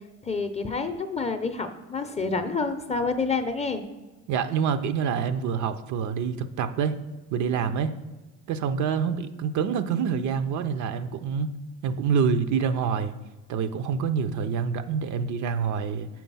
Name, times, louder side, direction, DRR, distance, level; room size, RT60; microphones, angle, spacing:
voice 1, 0.2-3.8, left 4 dB, 20° left, 8 dB, 0.6 m, -28 dB
voice 2, 4.3-6.9 7.3-7.9 8.5-11.5 11.8-13.1 13.5-16.1, right 6 dB, 55° right, 10 dB, 0.6 m, -26 dB
6.5 x 4.6 x 5.5 m, 1.2 s
supercardioid pair, 95°, 34 cm